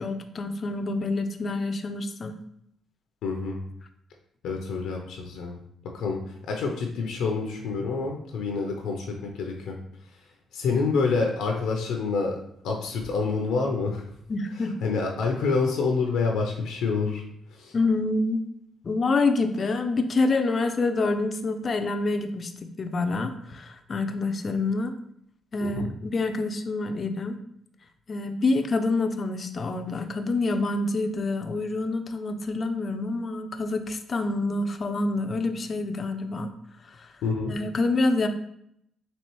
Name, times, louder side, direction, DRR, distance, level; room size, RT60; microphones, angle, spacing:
voice 1, 0.0-2.4 14.3-14.8 17.7-18.4 18.8-22.5 22.8-24.9 25.5-27.4 28.1-36.5 37.0-37.1 37.5-38.3, left 3 dB, 40° left, 7 dB, 0.4 m, -27 dB
voice 2, 3.2-3.6 4.4-5.6 5.9-6.2 6.5-9.8 10.5-12.4 12.6-14.0 14.8-17.2 17.6-17.7 25.6-25.9 37.2-37.5, left 4 dB, 85° left, 2 dB, 0.6 m, -27 dB
4.3 x 2.9 x 3.1 m, 0.71 s
cardioid pair, 90°, 0 cm